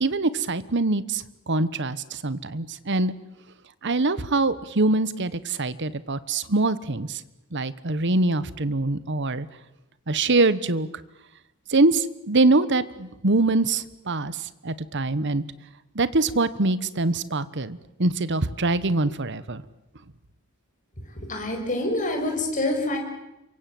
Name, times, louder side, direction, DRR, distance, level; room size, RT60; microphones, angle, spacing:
voice 1, 0.0-3.1 3.8-7.2 7.5-9.5 10.1-10.9 11.7-14.4 14.6-15.4 15.9-19.6, right 2 dB, 55° right, 16 dB, 1.2 m, -24 dB
voice 2, 21.3-23.0, left 1 dB, 35° left, 2 dB, 6.2 m, -26 dB
27.5 x 24.0 x 7.8 m, 0.95 s
head